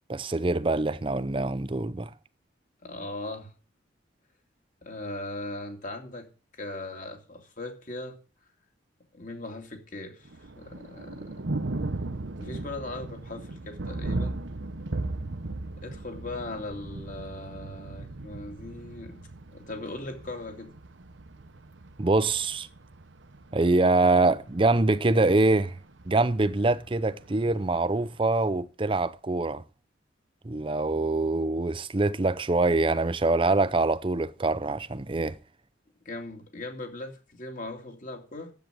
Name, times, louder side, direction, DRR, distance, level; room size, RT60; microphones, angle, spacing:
voice 1, 0.1-2.1 22.0-22.7 23.5-25.8 26.1-29.6 30.4-35.4, right 2 dB, 25° right, 0.5 m, -24 dB
voice 2, 2.8-3.5 4.8-8.2 9.1-10.3 10.6-11.3 12.4-14.4 15.8-20.7 36.0-38.5, left 2 dB, 40° left, 2.6 m, -39 dB
Thunder, 10.3-28.2, right 2 dB, 75° right, 1.0 m, -38 dB
10.5 x 8.3 x 7.5 m
head